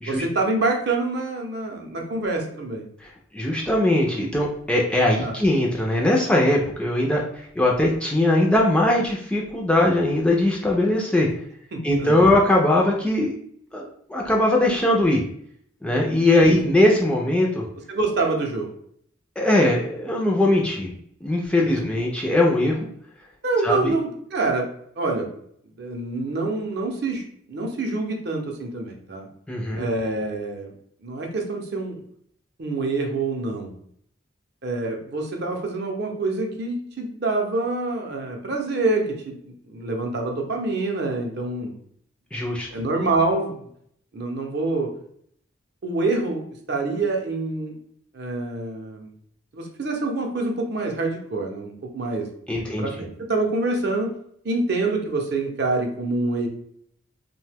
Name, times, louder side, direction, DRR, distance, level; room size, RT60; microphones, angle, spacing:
voice 1, 0.1-2.9 5.2-5.4 11.7-12.3 16.5-16.6 17.9-18.7 23.4-24.7 25.0-25.3 25.8-29.3 29.8-30.7 31.0-32.0 32.6-33.8 34.6-41.8 42.7-43.7 44.1-44.9 45.8-46.4 46.7-47.8 48.1-49.1 49.5-52.3 52.6-54.1 54.4-56.5, right 3 dB, 55° right, 2 dB, 0.5 m, -26 dB
voice 2, 3.0-11.3 11.8-13.3 13.7-15.2 15.8-17.6 19.4-20.9 21.2-22.9 23.6-23.9 29.5-29.9 42.3-42.7 52.5-52.9, left 1 dB, 5° left, -2 dB, 0.3 m, -20 dB
2.7 x 2.1 x 3.3 m, 0.67 s
head